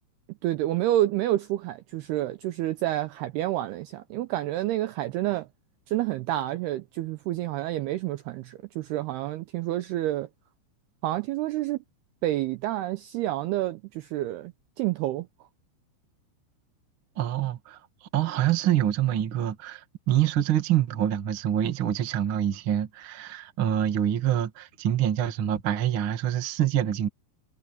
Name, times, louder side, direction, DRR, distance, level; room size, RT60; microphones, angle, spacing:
voice 1, 0.4-5.5 5.9-10.3 11.0-11.8 12.2-14.5 14.8-15.3, right 14 dB, 80° right, 2.4 m, -28 dB
voice 2, 17.1-17.8 18.1-27.1, right 11 dB, 50° right, 1.5 m, -26 dB
omnidirectional pair, 5.4 m